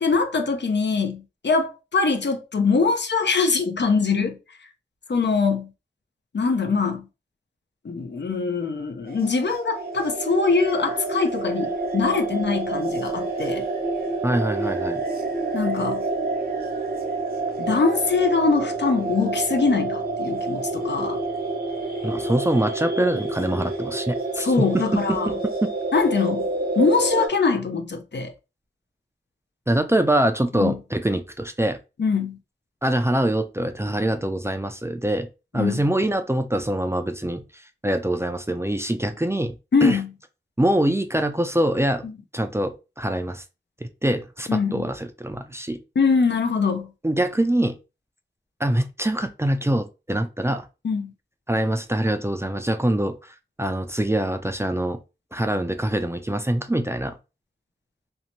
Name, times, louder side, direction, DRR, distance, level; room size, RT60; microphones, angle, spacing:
voice 1, 0.0-4.4 5.1-5.7 6.3-7.1 7.8-13.7 15.5-16.0 17.6-21.2 24.4-25.3 25.9-26.5 26.8-28.3 30.6-30.8 32.0-32.4 35.5-35.8 39.7-40.1 42.0-42.1 44.5-44.9 46.0-46.9 50.8-51.1, left 4 dB, 65° left, 0.5 m, -23 dB
sound 1, 9.1-27.3, right 2 dB, 55° right, 0.7 m, -28 dB
voice 2, 14.2-15.0 22.0-24.8 25.1-25.4 25.6-25.7 29.7-31.8 32.8-35.3 35.5-37.4 37.8-39.5 39.8-40.0 40.6-42.0 42.3-43.4 43.8-45.8 47.0-47.8 48.6-50.6 51.5-53.2 53.6-55.0 55.3-57.2, right 1 dB, 15° right, 0.4 m, -24 dB
2.7 x 2.1 x 2.9 m
wide cardioid pair, 40°, 19 cm